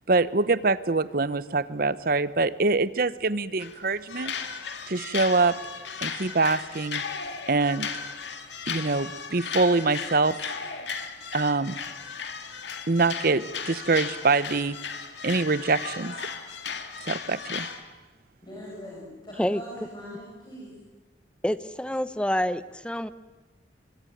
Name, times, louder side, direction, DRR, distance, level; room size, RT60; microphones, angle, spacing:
voice 1, 0.1-4.3 4.9-5.6 6.0-7.0 7.5-7.9 8.7-10.4 11.3-11.7 12.9-14.8 15.2-16.1 17.0-17.7, right 3 dB, 50° right, 16 dB, 0.9 m, -24 dB
sound 1, 3.6-3.8 4.1-17.8, left 6 dB, 70° left, 2.3 m, -36 dB
voice 2, 18.4-20.7, left 1 dB, 25° left, -5 dB, 7.3 m, -42 dB
voice 3, 21.4-23.1, equal, 5° left, 14 dB, 0.8 m, -27 dB
25.5 x 23.5 x 9.2 m, 1.3 s
head